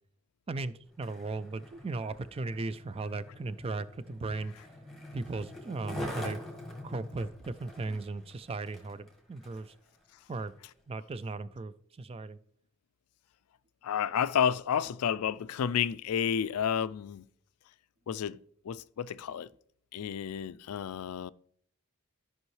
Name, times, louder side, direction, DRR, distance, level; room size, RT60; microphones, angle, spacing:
voice 1, 0.5-4.5 5.1-6.4 6.8-9.7 10.3-10.5 10.9-12.4, right 3 dB, 25° right, 0.3 m, -37 dB
Skateboard, 0.9-9.7 10.3-10.5, left 1 dB, ahead, 1.4 m, -44 dB
voice 2, 13.8-17.2 18.1-18.4 18.7-19.5 19.9-21.3, left 8 dB, 85° left, 0.4 m, -31 dB
13.5 x 5.4 x 3.2 m
head